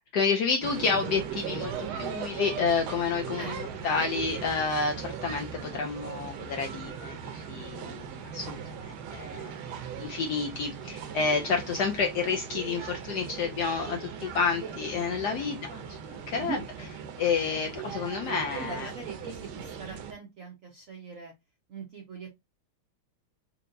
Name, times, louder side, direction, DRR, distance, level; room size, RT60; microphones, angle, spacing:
voice 1, 0.1-8.1 8.3-9.5 10.0-16.0 16.3-16.6 17.2-18.9, left 5 dB, 75° left, 0.9 m, -29 dB
sound 1, 0.6-20.1, right 7 dB, 80° right, 1.5 m, -39 dB
voice 2, 3.4-3.8 5.2-5.9 15.3-15.8 16.4-16.6 18.6-21.3 21.7-22.3, right 5 dB, 65° right, 0.8 m, -42 dB
4.4 x 2.8 x 2.5 m
omnidirectional pair, 2.3 m